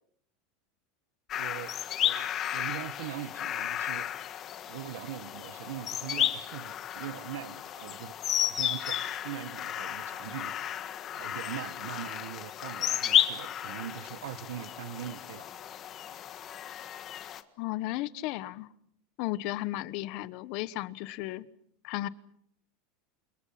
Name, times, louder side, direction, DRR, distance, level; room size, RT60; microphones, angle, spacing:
sound 1, 1.3-17.4, left 10 dB, 30° left, 1.6 m, -33 dB
voice 1, 1.4-1.7 2.0-4.0 4.7-9.0 9.2-10.7 11.1-15.5, right 12 dB, 85° right, 15 dB, 1.5 m, -41 dB
voice 2, 17.6-18.7 19.2-21.5 21.8-22.1, left 16 dB, 50° left, 17 dB, 1.1 m, -34 dB
29.5 x 27.5 x 5.9 m, 0.69 s
supercardioid pair, 165°, 0 cm